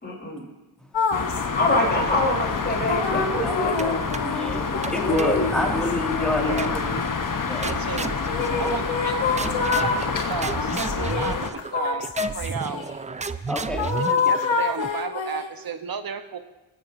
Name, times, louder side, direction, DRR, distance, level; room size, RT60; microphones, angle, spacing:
voice 1, 0.0-0.4 1.4-4.0 4.5-5.8, left 1 dB, 20° left, -3 dB, 3.9 m, -26 dB
sound 1, 0.9-2.1 2.9-7.2 8.3-10.1 10.6-12.9 13.8-15.6, left 5 dB, 65° left, 1.2 m, -27 dB
sound 2, 1.1-11.5, left 5 dB, 40° left, 1.0 m, -28 dB
sound 3, 3.8-4.4 4.8-6.0 6.6-7.1 7.6-9.1 9.4-15.1, right 4 dB, 15° right, 0.3 m, -33 dB
voice 2, 4.2-6.9 7.5-7.7 9.4-9.6 13.5-13.9, equal, ahead, -1 dB, 2.2 m, -28 dB
voice 3, 6.4-6.7 7.6-8.2 8.6-9.2 9.4-12.0 12.3-12.8 14.0-16.4, right 6 dB, 45° right, 9 dB, 1.0 m, -33 dB
19.5 x 8.5 x 2.7 m, 1.1 s
cardioid pair, 50°, 50 cm